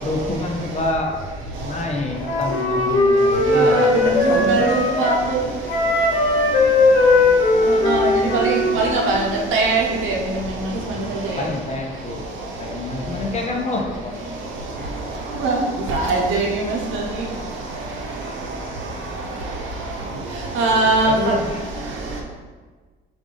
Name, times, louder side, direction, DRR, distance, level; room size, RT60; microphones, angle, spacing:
voice 1, 0.0-1.3 1.6-4.6 8.1-8.7 11.3-14.2 21.1-21.6, left 2 dB, 35° left, 1 dB, 0.7 m, -27 dB
Wind instrument woodwind instrument, 2.2-5.2 5.7-9.2, left 2 dB, 75° left, 1.0 m, -18 dB
voice 2, 4.2-5.4 7.9-8.1 8.4-9.2 9.5-9.8 10.1-10.2 15.4-15.6 15.9-16.4 20.6-21.3, right 3 dB, 90° right, -1 dB, 0.8 m, -20 dB
4.6 x 2.6 x 3.7 m, 1.4 s
cardioid pair, 90°, 20 cm